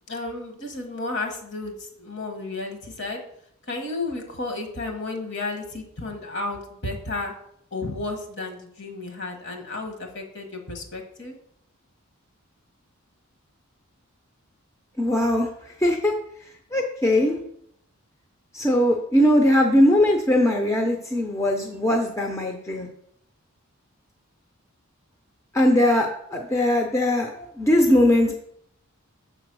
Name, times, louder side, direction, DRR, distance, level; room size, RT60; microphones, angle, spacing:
voice 1, 0.1-3.2 3.7-7.3 7.7-11.3, left 2 dB, 55° left, 4 dB, 1.3 m, -32 dB
voice 2, 15.0-16.1 16.7-17.4 18.5-22.9 25.5-28.3, left 1 dB, 15° left, 2 dB, 0.5 m, -20 dB
6.8 x 4.0 x 6.0 m, 0.71 s
head